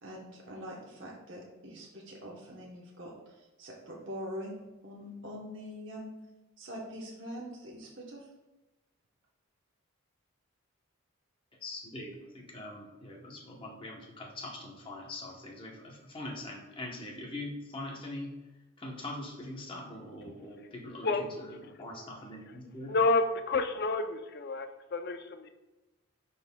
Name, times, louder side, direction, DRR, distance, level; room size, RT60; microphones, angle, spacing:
voice 1, 0.0-6.1 6.6-8.3, equal, 55° right, -2 dB, 1.0 m, -44 dB
voice 2, 11.6-18.3 18.8-22.9, left 1 dB, 25° left, 0 dB, 0.9 m, -42 dB
voice 3, 21.0-21.4 21.8-21.9 22.9-25.5, left 3 dB, 50° left, 7 dB, 0.5 m, -30 dB
11.0 x 4.0 x 2.2 m, 1.1 s
head